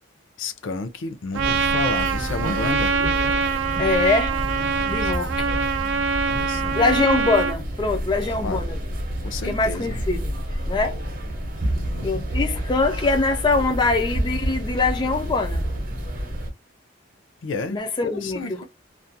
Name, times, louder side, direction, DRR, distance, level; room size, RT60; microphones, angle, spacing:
voice 1, 0.4-2.9 5.0-5.6 6.3-6.8 8.4-8.6 9.2-10.0 11.7-12.1 17.4-18.6, left 3 dB, 80° left, 0.5 m, -32 dB
sound 1, 1.3-16.5, equal, 45° right, 0.7 m, -29 dB
Trumpet, 1.3-7.6, right 5 dB, 75° right, 0.4 m, -24 dB
voice 2, 3.8-4.4 4.9-5.5 6.5-8.8 9.4-10.3 10.7-11.0 12.0-15.6 17.7-18.6, left 3 dB, 25° left, 0.3 m, -23 dB
2.4 x 2.2 x 2.6 m
head